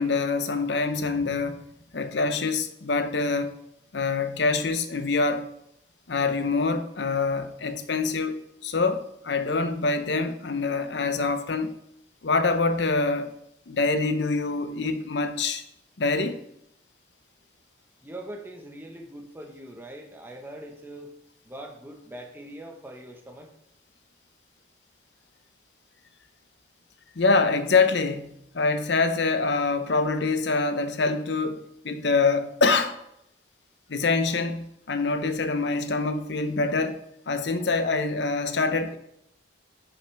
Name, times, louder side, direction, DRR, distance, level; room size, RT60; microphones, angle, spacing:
voice 1, 0.0-1.6 1.9-3.6 3.9-5.5 6.1-11.8 12.2-13.3 13.7-15.6 16.0-16.4 27.2-33.0 33.9-37.0 37.3-39.0, left 3 dB, 65° left, 0.7 m, -25 dB
voice 2, 18.0-21.1 21.4-23.5, right 1 dB, 10° right, 1.1 m, -42 dB
10.5 x 6.0 x 3.4 m
head